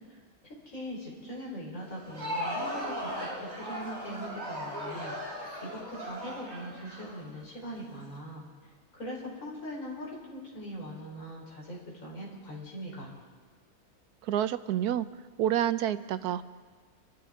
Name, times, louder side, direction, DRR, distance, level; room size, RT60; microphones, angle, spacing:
voice 1, 0.7-5.1 5.6-8.5 8.9-13.1, equal, 55° left, -3 dB, 4.7 m, -41 dB
Crowd, 1.9-7.8, equal, 45° right, 5.0 m, -37 dB
voice 2, 14.2-15.1 15.4-16.4, right 11 dB, 85° right, 13 dB, 1.1 m, -28 dB
26.0 x 13.5 x 3.7 m, 1.5 s
omnidirectional pair, 1.6 m